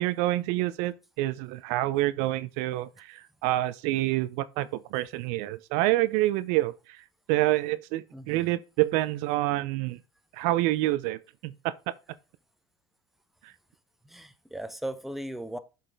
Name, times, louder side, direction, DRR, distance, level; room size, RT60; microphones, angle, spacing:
voice 1, 0.0-7.0 7.3-10.0 10.3-11.7 13.4-13.5, right 16 dB, 70° right, 0.5 m, -27 dB
voice 2, 14.0-15.6, right 1 dB, ahead, 0.7 m, -37 dB
7.4 x 4.1 x 3.4 m
hypercardioid pair, 90°, 12 cm